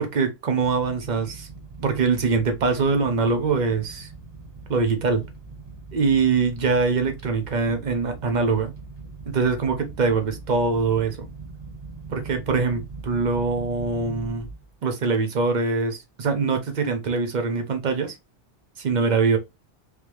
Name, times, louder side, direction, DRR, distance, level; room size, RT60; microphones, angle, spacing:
voice 1, 0.0-1.5 1.8-4.1 4.7-5.2 5.9-8.7 9.3-11.3 12.1-14.5 14.8-18.1 18.8-19.4, right 4 dB, 45° right, 0.9 m, -23 dB
sound 1, 0.6-14.7 15.1-15.4 15.9-16.0 16.2-16.3, right 3 dB, 25° right, 1.1 m, -41 dB
3.4 x 2.8 x 3.1 m
omnidirectional pair, 1.2 m